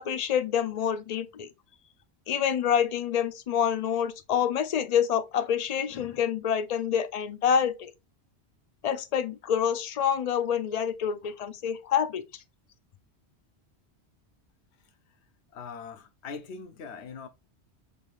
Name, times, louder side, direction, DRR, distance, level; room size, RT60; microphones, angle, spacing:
voice 1, 0.0-1.5 2.3-7.9 8.8-12.2, left 8 dB, 50° left, 0.5 m, -27 dB
voice 2, 15.5-17.3, left 5 dB, 75° left, 1.0 m, -41 dB
5.1 x 3.5 x 2.4 m
omnidirectional pair, 1.1 m